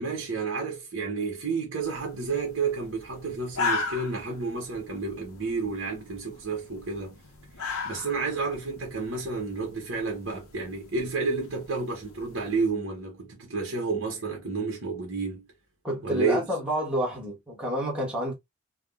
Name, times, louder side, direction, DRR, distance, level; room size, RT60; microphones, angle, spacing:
voice 1, 0.0-7.2 7.6-15.5 16.0-16.4, right 4 dB, 60° right, 0.9 m, -31 dB
sound 1, 1.8-12.7, left 4 dB, 85° left, 0.7 m, -38 dB
voice 2, 15.8-18.3, equal, 5° right, 1.0 m, -29 dB
3.4 x 2.1 x 2.3 m
head